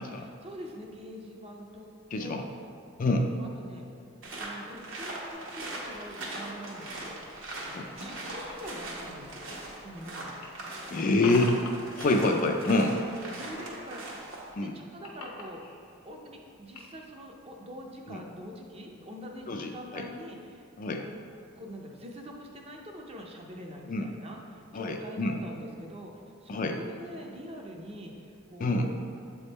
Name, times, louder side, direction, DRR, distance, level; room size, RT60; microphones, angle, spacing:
voice 1, 0.1-1.9 2.2-2.5 3.4-3.8 4.3-10.4 13.3-14.1 14.6-15.6 16.0-20.7 21.0-21.1 21.6-26.1 26.4-29.0, equal, 25° right, 1 dB, 0.5 m, -44 dB
voice 2, 2.1-2.4 3.0-3.3 7.7-7.9 10.9-11.6 12.0-13.0 14.6-14.7 18.1-18.2 19.5-20.0 20.8-21.0 23.9-24.1 24.7-25.3 26.5-26.8 28.6-28.9, left 2 dB, 40° left, 3 dB, 0.3 m, -26 dB
sound 1, 4.2-14.5, right 2 dB, 60° right, 1.0 m, -40 dB
sound 2, 5.3-10.0 10.3-12.4 12.6-14.1 14.4-17.1, left 3 dB, 80° left, 0.8 m, -46 dB
7.4 x 3.6 x 4.0 m, 2.5 s
head